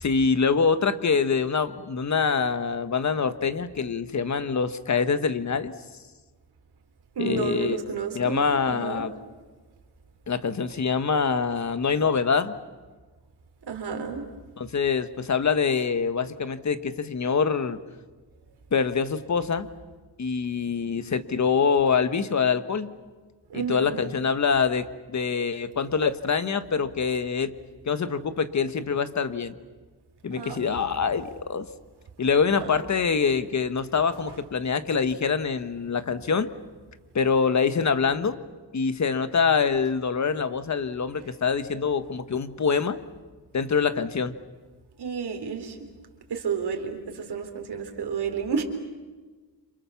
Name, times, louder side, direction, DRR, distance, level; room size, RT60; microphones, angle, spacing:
voice 1, 0.0-5.7 7.2-7.8 8.1-9.1 10.3-12.6 14.6-17.8 18.7-19.7 20.2-22.9 23.5-27.5 27.8-29.6 30.2-31.7 32.2-36.5 37.1-38.4 38.7-43.0 43.5-44.3, left 5 dB, 40° left, 11 dB, 1.3 m, -25 dB
voice 2, 7.2-9.1 13.7-14.2 23.5-24.0 30.4-30.6 32.6-32.8 45.0-45.8 46.3-48.6, right 6 dB, 65° right, 4 dB, 3.9 m, -31 dB
30.0 x 27.0 x 7.1 m, 1.3 s
wide cardioid pair, 145°, 42 cm